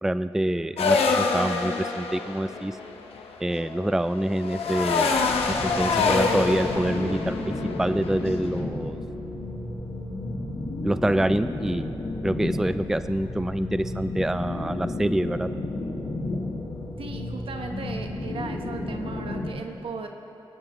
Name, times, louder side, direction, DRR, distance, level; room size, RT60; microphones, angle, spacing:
voice 1, 0.0-2.8 3.4-5.2 5.6-7.5 7.8-9.0 10.8-12.0 12.2-15.5, right 1 dB, 5° right, 12 dB, 0.3 m, -26 dB
sound 1, 0.8-8.5, left 4 dB, 80° left, 1.1 m, -26 dB
sound 2, 5.1-19.5, left 2 dB, 55° left, 2.4 m, -32 dB
voice 2, 17.0-20.1, right 4 dB, 65° right, 4 dB, 1.2 m, -36 dB
24.0 x 9.7 x 3.1 m, 2.7 s
cardioid pair, 55°, 10 cm